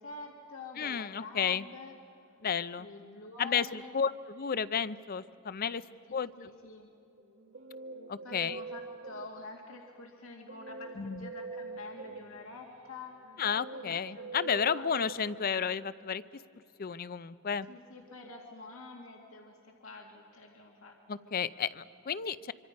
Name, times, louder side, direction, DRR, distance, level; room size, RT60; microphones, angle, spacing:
voice 1, 0.0-2.0 2.8-3.9 6.1-6.9 8.2-13.4 13.7-14.9 17.7-21.0, left 3 dB, 85° left, 0 dB, 2.3 m, -47 dB
voice 2, 0.8-1.6 2.4-2.9 3.4-5.8 6.1-6.3 8.1-8.6 11.0-11.3 13.4-16.2 16.8-17.7 21.1-22.5, left 7 dB, 45° left, 15 dB, 0.5 m, -32 dB
Guitar, 7.2-9.7 10.5-15.9, right 3 dB, 85° right, 1.9 m, -45 dB
25.5 x 25.0 x 5.3 m, 2.9 s
head